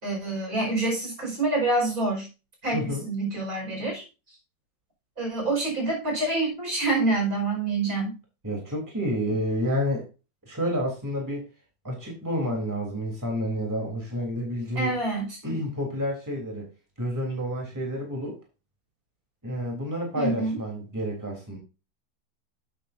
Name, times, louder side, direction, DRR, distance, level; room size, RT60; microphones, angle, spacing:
voice 1, 0.0-2.3 2.6-4.0 5.2-8.2 14.8-15.3 20.1-20.5, right 2 dB, 50° right, 0 dB, 5.5 m, -26 dB
voice 2, 2.7-3.1 8.4-10.0 10.5-11.5 11.8-14.9 15.4-16.7 17.0-18.4 19.4-21.6, equal, 10° right, -1 dB, 3.3 m, -29 dB
12.0 x 8.4 x 2.6 m, 0.30 s
omnidirectional pair, 1.9 m